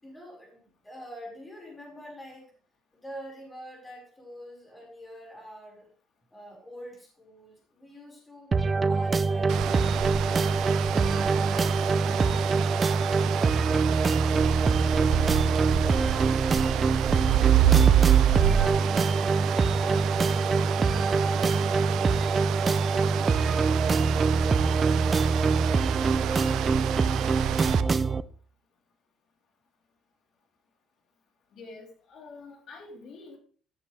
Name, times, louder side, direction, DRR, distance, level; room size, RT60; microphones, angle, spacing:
voice 1, 0.0-2.5 2.9-5.9 6.3-8.5 8.9-14.0 14.4-15.4 15.8-16.8 17.3-18.1 18.4-22.5, equal, 10° left, -2 dB, 5.4 m, -46 dB
sound 1, 8.5-28.2, right 4 dB, 25° right, 0.5 m, -24 dB
sound 2, 9.5-27.8, right 11 dB, 65° right, 0.6 m, -28 dB
voice 2, 31.5-33.4, left 3 dB, 55° left, 1 dB, 3.8 m, -46 dB
14.5 x 9.3 x 3.4 m, 0.43 s
cardioid pair, 145°, 0 cm